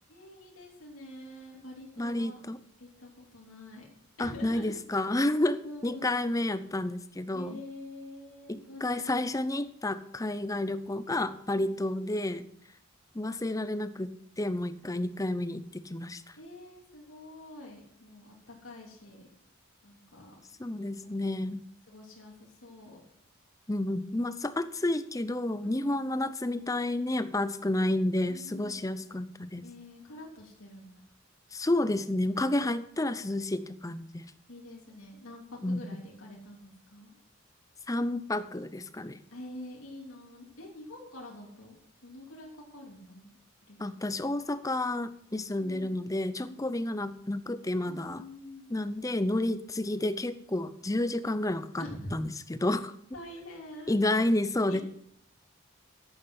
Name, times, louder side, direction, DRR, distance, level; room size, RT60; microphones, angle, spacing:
voice 1, 0.1-2.4 2.8-3.9 4.2-4.7 5.4-6.2 7.3-9.0 16.4-19.3 19.8-20.4 21.9-23.0 25.6-26.1 28.3-28.9 29.6-31.0 32.5-32.9 34.5-37.2 39.3-43.3 43.7-44.0 45.6-46.0 46.5-46.9 47.8-48.8 51.8-52.1 52.6-52.8 53.1-54.0 54.7-54.8, left 1 dB, 75° left, -2 dB, 3.1 m, -46 dB
voice 2, 2.0-2.6 4.2-7.6 8.5-12.4 13.1-16.4 20.6-21.6 23.7-29.6 31.5-34.2 35.6-35.8 37.9-39.2 43.8-48.2 48.7-51.9 52.1-52.9 53.9-54.8, left 1 dB, 15° left, 13 dB, 0.6 m, -30 dB
11.0 x 8.7 x 5.6 m, 0.69 s
head